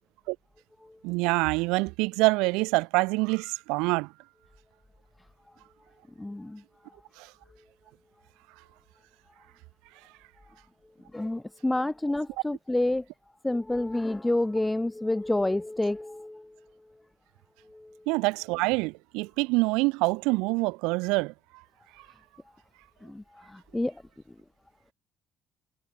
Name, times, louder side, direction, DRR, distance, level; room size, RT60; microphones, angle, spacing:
voice 1, 1.0-4.1 7.2-7.3 18.1-21.3, right 26 dB, 85° right, 6.3 m, -26 dB
voice 2, 6.2-6.6 11.1-13.0 13.4-16.5 17.7-18.0 23.0-23.2 23.5-23.9, left 1 dB, 15° left, 2.4 m, -28 dB
hypercardioid pair, 60°, 0 cm